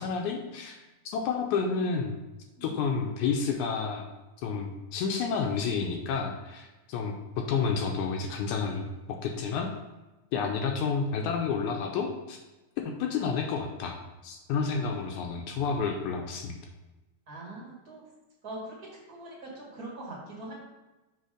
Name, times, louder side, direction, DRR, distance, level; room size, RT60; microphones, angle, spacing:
voice 1, 0.0-2.2 2.6-4.1 4.4-9.7 10.3-12.4 12.9-14.0 14.2-16.6, left 5 dB, 75° left, 2 dB, 2.0 m, -30 dB
voice 2, 17.3-18.0 18.4-18.7 19.1-20.6, right 2 dB, 35° right, -4 dB, 1.9 m, -42 dB
6.7 x 3.8 x 5.0 m, 1.1 s
omnidirectional pair, 3.7 m